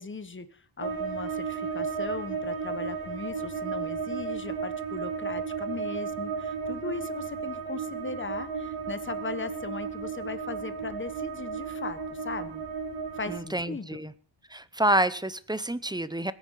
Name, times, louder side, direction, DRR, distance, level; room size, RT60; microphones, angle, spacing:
voice 1, 0.0-12.6 13.1-14.1, left 4 dB, 25° left, 11 dB, 1.2 m, -38 dB
sound 1, 0.8-13.4, right 5 dB, 85° right, 4.9 m, -34 dB
voice 2, 13.3-14.1 14.5-16.3, right 1 dB, 10° right, 15 dB, 0.7 m, -28 dB
21.0 x 8.9 x 5.6 m, 0.43 s
wide cardioid pair, 130°, 45 cm